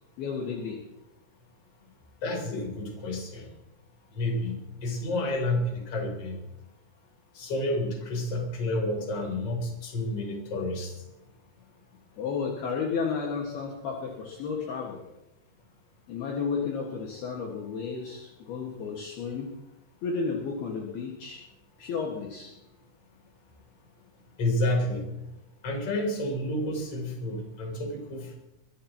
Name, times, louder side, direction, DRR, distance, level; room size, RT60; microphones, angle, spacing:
voice 1, 0.2-0.8 12.2-15.0 16.1-19.5 20.0-21.4 21.8-22.5, left 5 dB, 60° left, -1 dB, 3.4 m, -32 dB
voice 2, 2.2-3.5 4.1-6.4 7.3-10.9 24.4-25.1 25.6-28.3, left 1 dB, 35° left, 1 dB, 3.7 m, -30 dB
22.5 x 14.5 x 3.0 m, 0.92 s
omnidirectional pair, 5.5 m